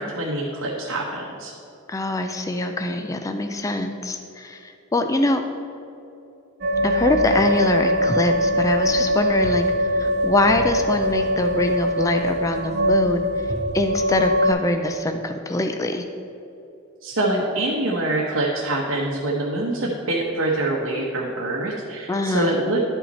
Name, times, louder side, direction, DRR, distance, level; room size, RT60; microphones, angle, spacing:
voice 1, 0.0-1.5 17.0-22.8, right 2 dB, 70° right, -3 dB, 1.0 m, -25 dB
voice 2, 1.9-5.4 6.8-13.3 13.7-16.0 22.1-22.6, left 2 dB, 15° left, 6 dB, 0.4 m, -23 dB
sound 1, 6.6-14.5, equal, 55° right, 0.8 m, -22 dB
11.0 x 5.7 x 4.2 m, 2.8 s
head